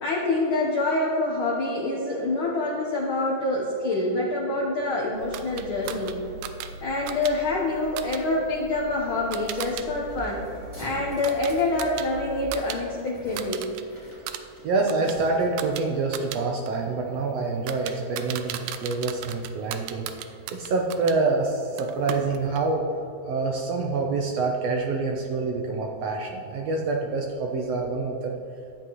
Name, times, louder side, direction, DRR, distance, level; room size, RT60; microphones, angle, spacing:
voice 1, 0.0-6.2 6.8-10.4 10.8-13.7, left 2 dB, 70° left, -3 dB, 1.2 m, -26 dB
Car, 5.1-12.4, right 1 dB, 55° right, 1.8 m, -43 dB
sound 1, 5.3-9.9 10.2-12.8 13.1-13.8 14.1-21.2 21.8-22.7, right 10 dB, 90° right, 2.1 m, -38 dB
sound 2, 9.4-15.7, equal, 10° right, 2.0 m, -46 dB
voice 2, 14.6-20.1 20.5-22.8 23.3-28.3, right 3 dB, 75° right, 0 dB, 1.6 m, -26 dB
13.0 x 8.7 x 3.0 m, 2.8 s
omnidirectional pair, 3.6 m